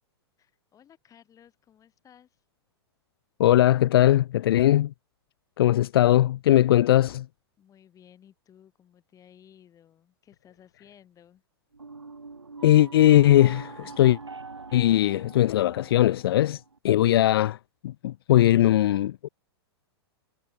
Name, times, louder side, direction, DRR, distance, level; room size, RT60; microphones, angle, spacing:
voice 1, 0.4-2.4 7.6-11.4, left 9 dB, 25° left, 5.5 m, -56 dB
voice 2, 3.4-4.9 5.6-7.3 12.6-14.2 14.7-17.6 17.8-19.3, left 13 dB, 60° left, 0.5 m, -20 dB
sound 1, 11.7-16.8, right 4 dB, 85° right, 5.4 m, -44 dB
figure-of-eight pair, 105°, 14 cm